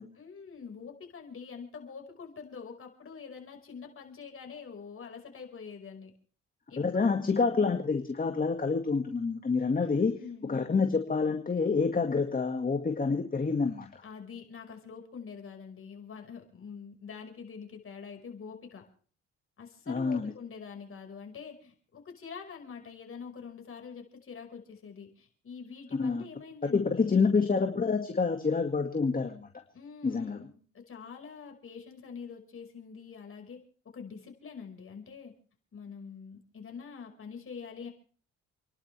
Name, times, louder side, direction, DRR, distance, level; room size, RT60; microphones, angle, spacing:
voice 1, 0.2-6.1 6.7-7.1 9.8-10.6 14.0-18.8 19.6-27.1 29.7-33.6 33.9-35.3 35.7-37.9, left 6 dB, 45° left, 3 dB, 5.3 m, -45 dB
voice 2, 6.8-14.0 19.9-20.3 26.0-26.2 26.7-29.6 30.0-30.5, left 4 dB, 30° left, 5 dB, 2.1 m, -28 dB
29.5 x 11.5 x 3.4 m, 0.42 s
cardioid pair, 90°, 30 cm